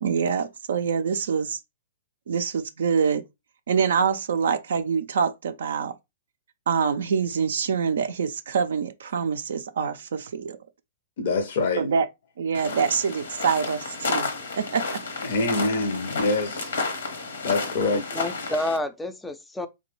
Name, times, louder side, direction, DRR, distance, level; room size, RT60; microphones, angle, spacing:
voice 1, 0.0-1.6 2.3-3.2 3.7-5.9 6.7-10.6 11.8-12.1 12.4-14.3 14.6-15.0, right 6 dB, 70° right, 0.3 m, -25 dB
voice 2, 11.2-11.9 15.2-16.7 17.4-18.2, left 3 dB, 60° left, 0.5 m, -25 dB
sound 1, 12.5-18.8, left 3 dB, 80° left, 0.8 m, -31 dB
voice 3, 17.8-19.7, left 1 dB, 5° left, 0.3 m, -30 dB
3.1 x 2.2 x 2.9 m
hypercardioid pair, 120°, 0 cm